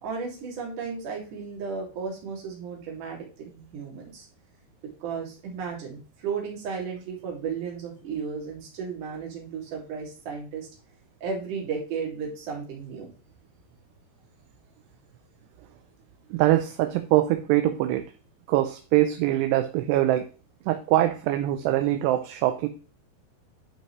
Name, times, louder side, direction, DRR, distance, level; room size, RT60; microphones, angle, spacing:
voice 1, 0.0-4.3 5.0-10.7 11.2-13.1, right 5 dB, 50° right, -2 dB, 3.5 m, -34 dB
voice 2, 16.3-18.0 18.5-20.3 20.7-22.7, right 14 dB, 80° right, 8 dB, 2.6 m, -23 dB
12.0 x 5.7 x 3.1 m, 0.36 s
omnidirectional pair, 5.1 m